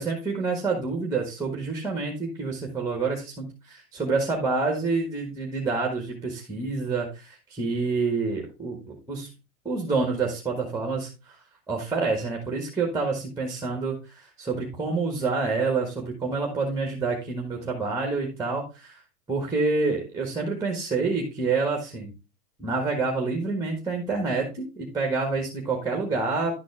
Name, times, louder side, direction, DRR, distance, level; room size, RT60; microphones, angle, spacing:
voice 1, 0.0-9.3 9.6-11.4 11.7-19.0 19.3-22.1 22.6-26.5, right 4 dB, 5° right, 2 dB, 1.4 m, -28 dB
11.0 x 4.1 x 3.4 m, 0.30 s
hypercardioid pair, 125°, 48 cm